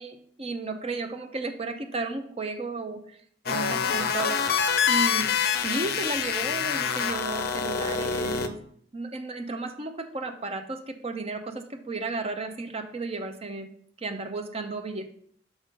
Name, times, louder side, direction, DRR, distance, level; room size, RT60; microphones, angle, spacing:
voice 1, 0.0-3.2 3.5-4.4 4.9-5.3 5.6-8.5 8.9-13.7 14.0-15.1, right 3 dB, 30° right, 7 dB, 0.6 m, -33 dB
sound 1, 3.5-8.5, left 7 dB, 55° left, 0.5 m, -26 dB
6.2 x 3.7 x 5.3 m, 0.62 s
head